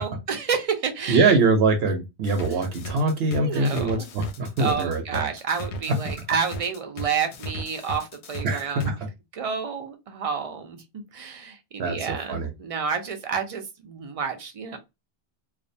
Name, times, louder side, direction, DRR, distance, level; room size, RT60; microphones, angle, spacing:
voice 1, 0.0-1.3 3.4-4.1 4.6-8.9 9.4-14.8, right 6 dB, 50° right, 0.4 m, -30 dB
voice 2, 1.1-5.3 5.9-6.0 8.4-9.0 11.8-12.5, right 3 dB, 70° right, 0.8 m, -23 dB
sound 1, 2.2-8.9, equal, 90° left, 0.9 m, -36 dB
2.4 x 2.1 x 2.6 m
omnidirectional pair, 1.1 m